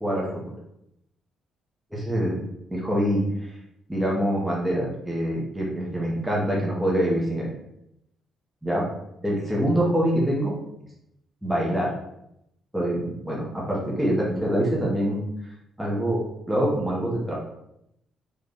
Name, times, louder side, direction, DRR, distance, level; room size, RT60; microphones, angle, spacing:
voice 1, 0.0-0.4 1.9-2.4 2.7-3.5 3.9-7.5 8.6-8.9 9.2-10.5 11.4-11.9 12.7-15.2 15.8-17.3, equal, 5° right, -5 dB, 1.3 m, -25 dB
3.3 x 3.2 x 4.2 m, 0.80 s
cardioid pair, 90°, 0 cm